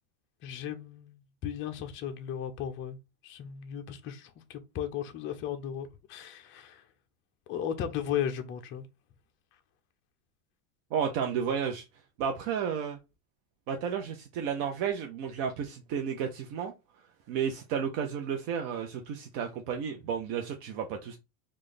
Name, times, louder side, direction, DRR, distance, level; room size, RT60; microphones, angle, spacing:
voice 1, 0.4-3.0 3.2-6.9 7.5-8.9, left 9 dB, 30° left, 0.5 m, -36 dB
voice 2, 10.9-11.8 12.2-13.0 13.7-16.7 17.3-21.2, right 7 dB, 50° right, 0.7 m, -32 dB
3.2 x 2.4 x 3.8 m
supercardioid pair, 125°, 41 cm